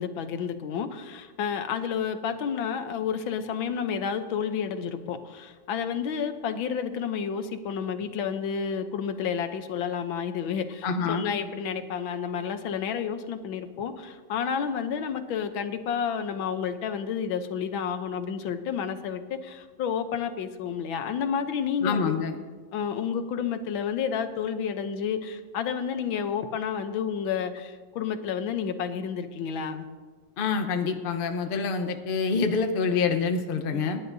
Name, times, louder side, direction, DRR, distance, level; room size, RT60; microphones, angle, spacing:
voice 1, 0.0-22.1 22.7-29.9 33.7-34.0, left 7 dB, 85° left, 9 dB, 1.6 m, -30 dB
voice 2, 10.8-11.3 21.8-22.3 30.4-34.0, left 5 dB, 40° left, 6 dB, 0.9 m, -26 dB
28.5 x 10.5 x 2.7 m, 1.4 s
omnidirectional pair, 2.1 m